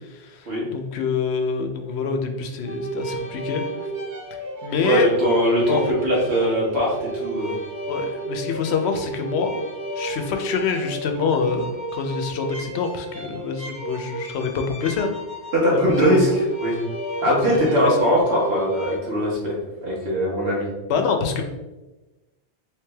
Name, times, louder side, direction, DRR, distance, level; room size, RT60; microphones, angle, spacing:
voice 1, 0.1-3.6 4.6-5.1 5.7-5.8 7.9-9.5 10.0-15.1 15.7-16.2 17.2-17.4 17.6-18.0 20.9-21.4, left 5 dB, 85° left, 5 dB, 0.9 m, -26 dB
sound 1, 2.6-19.0, right 2 dB, 50° right, 0.8 m, -32 dB
voice 2, 4.8-7.5 15.5-16.3 16.6-16.8 17.2-20.7, equal, 80° right, -4 dB, 1.5 m, -21 dB
3.2 x 3.2 x 3.3 m, 1.1 s
omnidirectional pair, 1.1 m